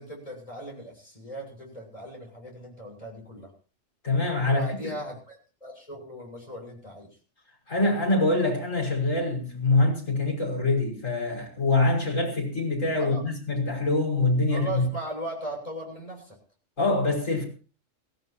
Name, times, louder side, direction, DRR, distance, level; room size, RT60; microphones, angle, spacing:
voice 1, 0.0-3.5 4.5-7.1 13.0-13.2 14.5-16.4, right 1 dB, 25° left, 7.2 m, -38 dB
voice 2, 4.0-4.9 7.7-14.9 16.8-17.4, left 2 dB, 85° left, 6.1 m, -24 dB
23.0 x 16.0 x 2.9 m
omnidirectional pair, 1.3 m